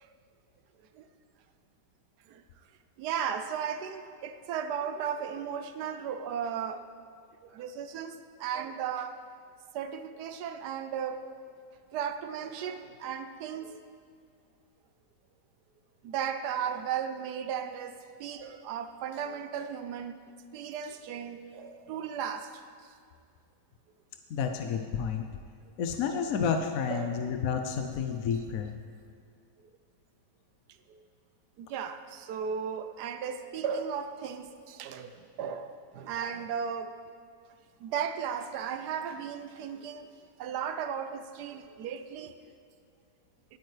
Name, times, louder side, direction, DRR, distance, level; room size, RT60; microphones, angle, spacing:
voice 1, 3.0-6.9 7.4-9.2 9.7-11.2 11.9-13.8 16.0-20.2 20.5-22.6 26.9-27.4 30.9-31.0 31.6-35.1 35.4-37.0 37.8-40.1 40.4-42.3, right 7 dB, 70° right, 9 dB, 1.1 m, -35 dB
voice 2, 24.3-25.3 25.8-28.8, left 6 dB, 65° left, 6 dB, 0.9 m, -30 dB
19.0 x 8.8 x 3.3 m, 2.3 s
omnidirectional pair, 1.9 m